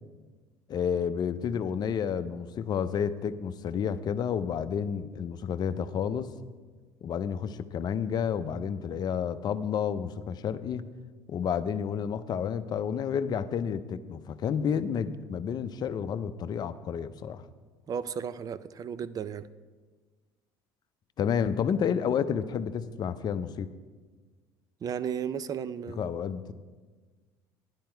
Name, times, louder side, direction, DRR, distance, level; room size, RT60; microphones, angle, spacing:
voice 1, 0.7-6.3 7.0-10.9 11.3-17.4 21.2-23.7 26.0-26.5, left 7 dB, 45° left, 0.6 m, -30 dB
voice 2, 17.9-19.5 24.8-26.1, right 7 dB, 40° right, 0.5 m, -34 dB
10.5 x 10.5 x 4.5 m
supercardioid pair, 90°, 9 cm